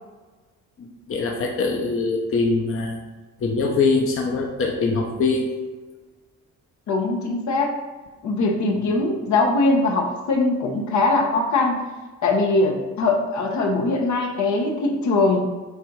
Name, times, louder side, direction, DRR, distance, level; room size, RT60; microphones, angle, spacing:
voice 1, 0.8-3.0 3.4-5.5 8.7-9.0, left 3 dB, 45° left, 1 dB, 0.9 m, -23 dB
voice 2, 6.9-7.8 8.2-11.8 12.2-15.4, left 3 dB, 70° left, 1 dB, 1.1 m, -21 dB
7.7 x 2.6 x 4.7 m, 1.3 s
cardioid pair, 90°, 30 cm